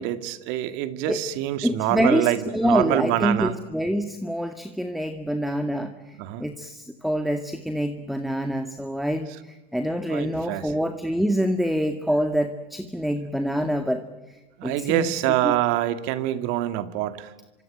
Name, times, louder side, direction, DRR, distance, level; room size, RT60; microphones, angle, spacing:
voice 1, 0.0-3.5 6.2-6.5 10.1-10.7 14.6-17.3, right 13 dB, 70° right, 11 dB, 2.2 m, -25 dB
voice 2, 1.6-14.0 14.6-15.1 15.4-15.5, equal, ahead, 8 dB, 2.0 m, -26 dB
25.5 x 25.5 x 9.1 m, 1.1 s
hypercardioid pair, 85°, 21 cm